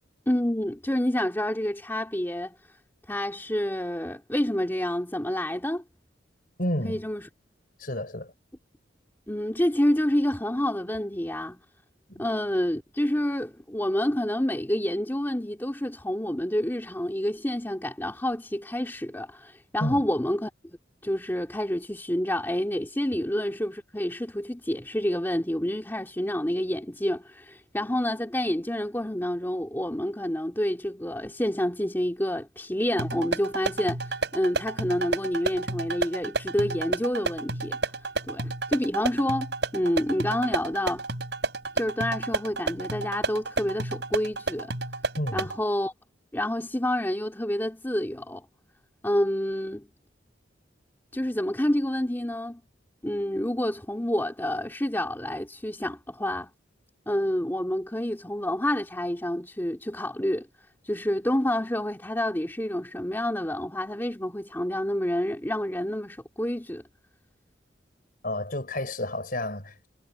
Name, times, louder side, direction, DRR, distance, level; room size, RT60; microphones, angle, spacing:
voice 1, 0.3-2.6 3.1-5.8 6.8-7.2 9.3-11.6 12.2-20.5 21.0-37.8 38.3-41.0 41.7-44.7 45.3-45.9 46.3-48.4 49.0-49.9 51.1-52.6 53.0-56.5 57.1-60.5 60.8-66.8, left 1 dB, 10° left, 2.3 m, -28 dB
voice 2, 6.6-7.0 7.8-8.3 12.1-12.2 19.8-20.0 45.1-45.5 68.2-69.9, left 1 dB, 50° left, 5.0 m, -30 dB
sound 1, 33.0-45.6, right 3 dB, 65° right, 7.4 m, -31 dB
head